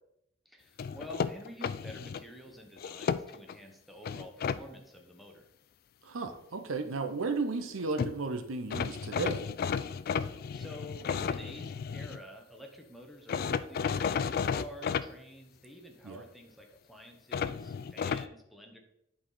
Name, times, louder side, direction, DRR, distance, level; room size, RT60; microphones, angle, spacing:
voice 1, 0.4-5.5 10.0-18.8, equal, ahead, 2 dB, 0.9 m, -49 dB
sound 1, 0.8-2.2 2.8-3.6 4.0-4.6 7.7-7.8 8.0-8.1 8.7-12.2 13.3-15.1 17.3-18.3, left 6 dB, 45° left, 0.3 m, -33 dB
voice 2, 6.0-9.5 16.0-16.2, right 3 dB, 80° right, 7 dB, 0.7 m, -34 dB
10.0 x 4.2 x 3.9 m, 0.79 s
head